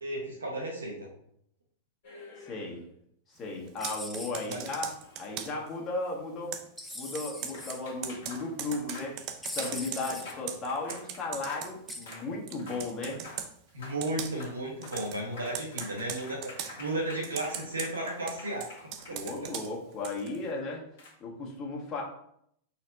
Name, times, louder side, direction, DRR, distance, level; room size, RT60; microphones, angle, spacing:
voice 1, 0.0-1.1 4.5-4.6 13.7-18.7 19.1-19.5, right 1 dB, 85° right, -1 dB, 0.9 m, -34 dB
sound 1, 2.0-2.9 4.9-5.9 7.5-11.7 12.1-12.3 12.6-12.9 13.1-13.4 13.7-14.0 14.3-14.6 14.8-19.6 21.0-21.1, left 3 dB, 60° left, 1.3 m, -48 dB
voice 2, 2.5-2.8 3.3-4.9 5.2-6.6 6.9-9.2 9.5-13.2 19.1-20.8 21.2-22.0, left 3 dB, 30° left, -1 dB, 1.3 m, -35 dB
Computer keyboard, 3.7-5.7 6.5-12.2 12.5-13.5 14.0-14.5 14.8-15.2 15.5-16.8 17.2-20.4, right 9 dB, 45° right, 0.5 m, -40 dB
sound 2, 3.8-4.6 6.8-7.8 9.4-10.3 11.9-12.2, left 1 dB, 5° left, 0.6 m, -41 dB
4.1 x 2.2 x 4.0 m, 0.71 s
hypercardioid pair, 95°, 0 cm